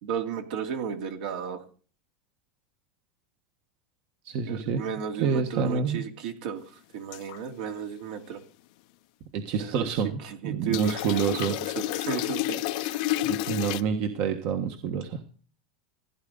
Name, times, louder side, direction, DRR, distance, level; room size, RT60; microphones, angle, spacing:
voice 1, 0.0-1.6 4.5-6.6 6.9-8.4 9.6-9.9 10.2-13.0, right 7 dB, 65° right, 4 dB, 2.6 m, -34 dB
voice 2, 4.2-4.8 5.2-6.0 9.3-11.5 13.2-15.2, right 6 dB, 45° right, 6 dB, 1.4 m, -28 dB
sound 1, 7.1-7.4 10.7-13.8, left 16 dB, 55° left, 0.7 m, -30 dB
15.5 x 10.0 x 4.0 m, 0.39 s
supercardioid pair, 160°, 5 cm